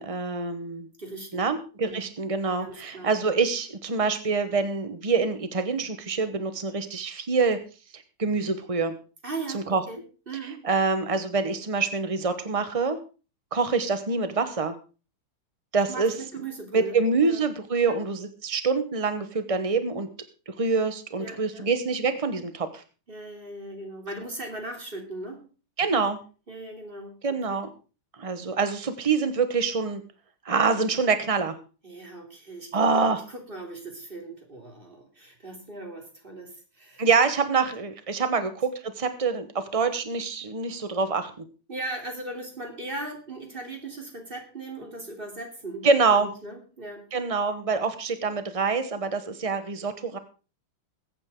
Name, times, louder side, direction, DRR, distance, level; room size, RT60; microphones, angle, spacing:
voice 1, 0.0-0.9 1.3-7.6 7.9-8.9 9.5-9.8 10.6-13.0 13.5-14.7 15.7-16.1 16.7-20.1 20.5-22.8 25.8-26.2 27.2-27.7 28.2-30.0 30.4-31.6 32.7-33.2 37.0-41.4 45.8-46.3 47.1-50.2, right 4 dB, 60° right, 9 dB, 0.3 m, -25 dB
voice 2, 1.0-1.5 1.8-2.0 2.6-3.1 9.2-10.0 10.3-10.6 15.9-16.9 17.2-17.4 17.8-18.0 21.2-21.7 23.1-25.4 26.5-27.6 31.8-33.0 33.3-37.1 38.3-38.4 41.7-45.9 46.4-47.1, right 2 dB, 25° right, 2 dB, 3.2 m, -38 dB
21.5 x 8.8 x 3.7 m, 0.35 s
omnidirectional pair, 2.4 m